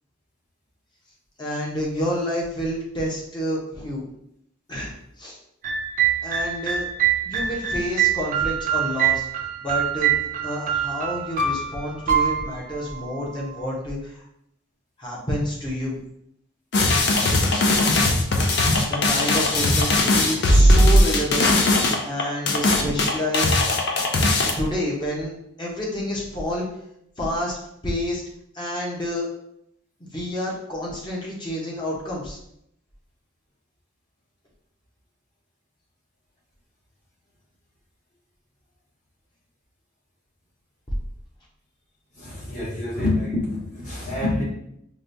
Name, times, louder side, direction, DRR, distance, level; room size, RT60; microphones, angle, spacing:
voice 1, 1.4-4.0 4.7-5.4 6.2-6.9 7.3-9.3 9.6-10.1 10.4-14.2 15.0-16.0 18.6-21.5 22.0-23.9 24.6-25.3 25.6-26.7 27.2-27.6 27.8-28.2 28.5-29.3 30.1-32.4, left 1 dB, 20° left, -4 dB, 0.8 m, -29 dB
sound 1, 5.6-13.6, right 8 dB, 40° right, 0.4 m, -24 dB
sound 2, 16.7-24.5, left 1 dB, 55° left, 0.5 m, -18 dB
voice 2, 42.2-44.4, left 2 dB, 35° left, -6 dB, 1.2 m, -26 dB
4.7 x 2.2 x 2.7 m, 0.74 s
head